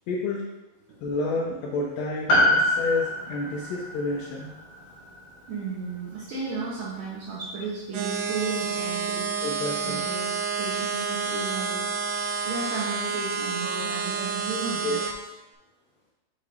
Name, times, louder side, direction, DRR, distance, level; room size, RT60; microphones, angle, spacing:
voice 1, 0.1-0.4 1.0-4.5 9.4-10.1 14.8-15.1, left 2 dB, 80° left, -4 dB, 2.1 m, -29 dB
Piano, 2.3-6.9 7.1-7.2, left 1 dB, 60° left, 1.6 m, -27 dB
voice 2, 5.5-9.3 9.8-10.3 10.6-11.9 12.4-15.0, right 4 dB, 70° right, -7 dB, 2.2 m, -34 dB
sound 1, 7.9-15.1, right 5 dB, 90° right, 2.0 m, -29 dB
6.9 x 2.8 x 4.9 m, 1.0 s
omnidirectional pair, 4.7 m